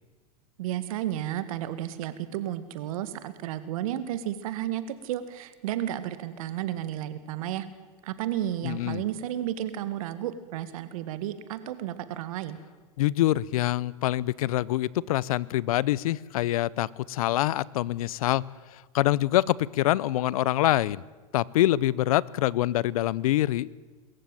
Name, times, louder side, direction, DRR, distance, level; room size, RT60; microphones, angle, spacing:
voice 1, 0.6-7.7 8.0-12.6, right 12 dB, 70° right, 12 dB, 2.0 m, -32 dB
voice 2, 8.6-9.0 13.0-18.4 18.9-21.0 21.3-23.7, left 15 dB, 75° left, 24 dB, 0.7 m, -25 dB
23.5 x 14.5 x 9.2 m, 1.3 s
hypercardioid pair, 115°, 19 cm